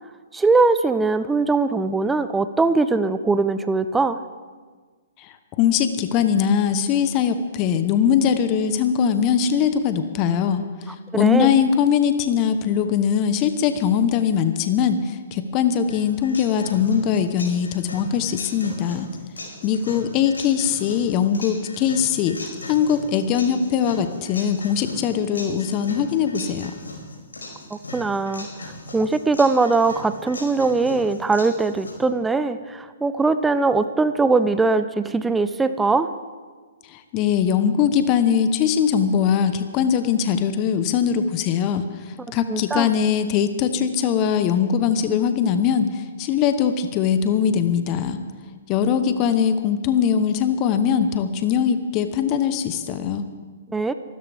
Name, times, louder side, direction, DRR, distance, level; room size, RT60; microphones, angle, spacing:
voice 1, 0.3-4.2 11.1-11.5 27.9-28.5 28.9-36.1 42.5-42.9 53.7-53.9, right 3 dB, 10° right, 12 dB, 0.7 m, -21 dB
voice 2, 5.2-10.6 11.1-19.1 19.6-26.7 36.9-48.2 48.7-53.2, left 8 dB, 35° left, 9 dB, 1.0 m, -21 dB
sound 1, 15.9-31.9, left 2 dB, 85° left, 4.8 m, -39 dB
25.5 x 13.5 x 3.5 m, 1.5 s
hypercardioid pair, 125°, 0 cm